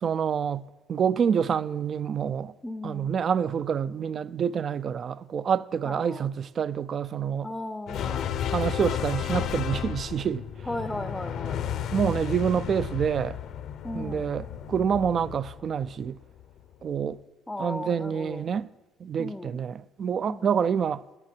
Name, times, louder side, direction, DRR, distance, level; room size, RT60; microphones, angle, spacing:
voice 1, 0.0-2.5 2.8-7.5 8.5-10.5 11.9-13.4 13.9-16.2 16.8-17.2 17.6-18.7 19.0-21.0, right 7 dB, 40° right, 0.3 m, -27 dB
voice 2, 2.6-3.2 5.9-6.3 7.4-8.3 10.6-11.6 13.8-14.3 17.5-18.5 19.2-19.6 20.3-20.5, left 1 dB, 10° left, 0.6 m, -36 dB
sound 1, 7.9-16.4, left 9 dB, 60° left, 0.7 m, -33 dB
10.5 x 8.9 x 7.7 m
cardioid pair, 135°, 0 cm